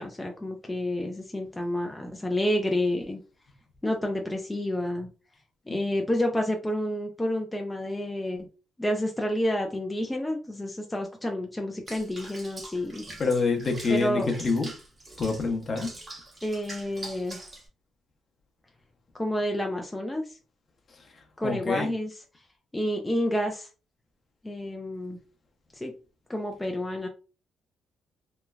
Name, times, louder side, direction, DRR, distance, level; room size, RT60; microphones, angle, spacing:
voice 1, 0.0-3.2 3.8-5.1 5.7-8.5 8.8-13.0 13.9-14.3 16.4-17.4 19.2-20.3 21.4-22.1 22.7-23.7 24.4-25.2 25.7-25.9 26.3-27.1, left 1 dB, 10° left, 0.4 m, -29 dB
Water / Bathtub (filling or washing), 11.9-17.7, right 2 dB, 35° right, 1.1 m, -44 dB
voice 2, 13.2-14.7 15.2-15.9 21.4-21.9, left 4 dB, 40° left, 0.8 m, -26 dB
3.1 x 2.2 x 2.3 m
cardioid pair, 90°, 0 cm